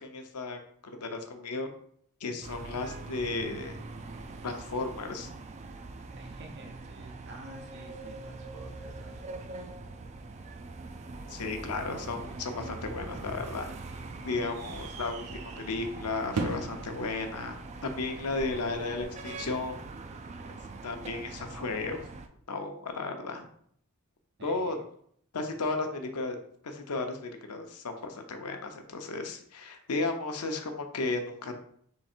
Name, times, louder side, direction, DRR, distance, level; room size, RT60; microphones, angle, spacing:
voice 1, 0.0-1.7 2.2-3.7 4.4-5.3 11.3-13.7 14.2-19.8 20.5-20.6 20.8-22.0 22.5-23.5 24.4-24.8 25.3-26.4 26.6-31.6, left 3 dB, 85° left, 5 dB, 0.7 m, -34 dB
sound 1, 2.4-22.3, right 3 dB, 30° right, 0.3 m, -43 dB
voice 2, 6.2-9.7 24.4-24.8, right 2 dB, 50° right, 2 dB, 0.8 m, -50 dB
sound 2, 14.0-19.0, right 4 dB, 85° right, 0.7 m, -41 dB
3.7 x 3.2 x 4.4 m, 0.65 s
head